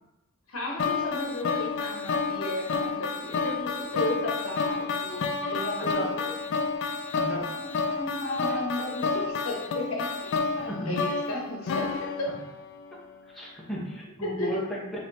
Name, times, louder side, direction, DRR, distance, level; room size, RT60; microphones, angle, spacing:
voice 1, 0.5-6.3 7.3-12.3 14.2-14.5, left 1 dB, 75° left, -1 dB, 1.0 m, -34 dB
sound 1, 0.8-13.0, left 4 dB, 60° left, 0.3 m, -30 dB
voice 2, 5.8-6.1 7.1-7.5 10.7-11.0 13.3-15.0, right 1 dB, ahead, -7 dB, 1.1 m, -34 dB
5.6 x 3.0 x 2.7 m, 0.94 s
head